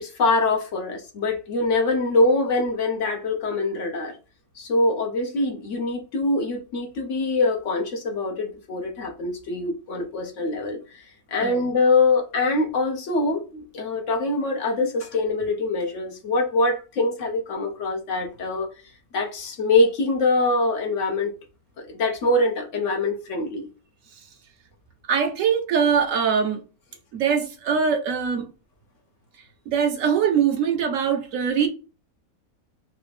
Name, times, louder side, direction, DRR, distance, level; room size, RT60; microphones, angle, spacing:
voice 1, 0.0-4.2 4.6-18.7 19.1-21.3 21.8-23.7, left 2 dB, 60° left, 1.0 m, -24 dB
voice 2, 25.1-26.6 27.1-28.4 29.7-31.7, right 7 dB, 70° right, 1.0 m, -22 dB
3.3 x 2.6 x 3.1 m
omnidirectional pair, 1.6 m